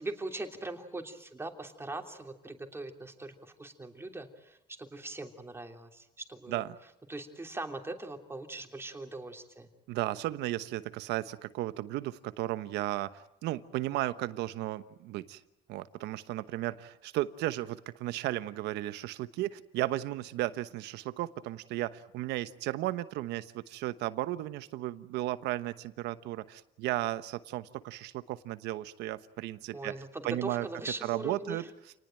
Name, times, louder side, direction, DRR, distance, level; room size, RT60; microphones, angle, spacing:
voice 1, 0.0-6.6 7.1-9.7 29.7-31.7, right 2 dB, 15° right, 4 dB, 3.2 m, -41 dB
voice 2, 9.9-15.4 15.7-30.7 31.0-31.6, right 15 dB, 85° right, 13 dB, 1.1 m, -35 dB
28.0 x 19.5 x 9.1 m, 0.86 s
cardioid pair, 110°, 17 cm